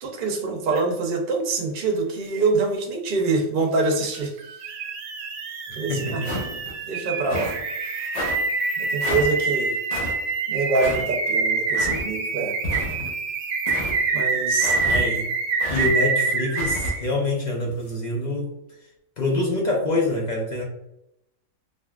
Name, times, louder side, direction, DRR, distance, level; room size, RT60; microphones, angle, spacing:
voice 1, 0.0-4.3 5.8-6.2 6.9-7.6 7.9-8.2 8.8-9.8 10.5-12.5 14.1-14.8, right 3 dB, 55° right, 1 dB, 0.6 m, -25 dB
sound 1, 0.7-0.8 4.1-17.0, right 4 dB, 85° right, 1.0 m, -26 dB
voice 2, 5.9-6.3 14.9-15.3 15.7-18.6 19.2-20.6, left 2 dB, 60° left, -1 dB, 0.4 m, -25 dB
sound 2, 6.2-6.7 7.2-7.6 8.1-8.4 9.0-9.3 9.9-10.1 10.7-11.0 11.7-12.0 12.6-13.1 13.7-14.0 14.6-15.0 15.6-15.9 16.6-16.9, left 1 dB, 35° left, 0.7 m, -30 dB
3.4 x 2.5 x 2.3 m, 0.80 s
omnidirectional pair, 1.4 m